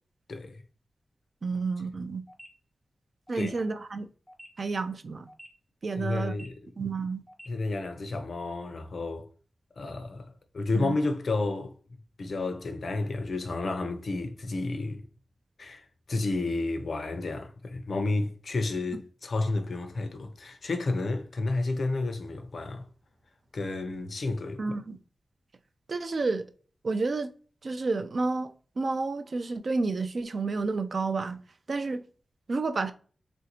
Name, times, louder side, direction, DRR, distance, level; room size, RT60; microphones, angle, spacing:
voice 1, 0.3-0.6 3.4-3.5 6.0-6.7 7.5-9.3 9.8-11.7 12.2-15.1 15.6-22.9 23.5-24.6, left 2 dB, 65° left, 0.5 m, -31 dB
voice 2, 1.4-2.2 3.3-4.1 4.6-5.3 5.8-6.3 6.8-7.2 10.7-11.0 24.6-25.0 25.9-26.5 26.8-27.3 27.6-31.4 31.7-32.0 32.5-32.9, right 3 dB, 55° right, 0.4 m, -30 dB
sound 1, 2.3-2.5 3.3-3.5 4.3-4.5 5.3-5.5 6.3-6.5 7.3-7.5, equal, ahead, 0.7 m, -48 dB
3.2 x 2.6 x 2.9 m
wide cardioid pair, 100°, 0 cm